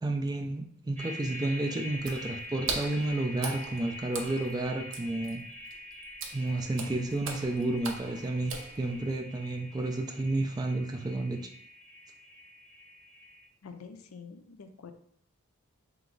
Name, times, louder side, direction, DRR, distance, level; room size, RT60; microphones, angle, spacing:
voice 1, 0.0-5.4 6.3-11.4, right 2 dB, 20° right, 5 dB, 0.3 m, -31 dB
sound 1, 0.9-13.4, left 1 dB, 5° left, 0.9 m, -45 dB
Water / Splash splatter, 1.9-9.2, right 4 dB, 60° right, 0.7 m, -40 dB
voice 2, 13.6-14.9, left 5 dB, 75° left, 8 dB, 0.4 m, -47 dB
3.4 x 3.0 x 3.8 m, 0.68 s
head